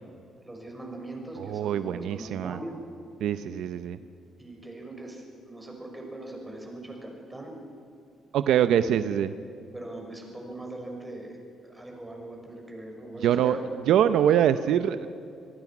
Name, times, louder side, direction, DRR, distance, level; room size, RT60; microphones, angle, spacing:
voice 1, 0.4-2.7 4.4-7.5 8.6-9.1 9.7-11.4 11.6-13.6, right 1 dB, 15° right, 1 dB, 6.2 m, -41 dB
voice 2, 1.4-2.6 3.2-4.0 8.3-9.3 13.2-13.6 13.9-15.1, right 10 dB, 80° right, 12 dB, 0.7 m, -24 dB
27.5 x 18.0 x 6.1 m, 2.5 s
cardioid pair, 90°, 0 cm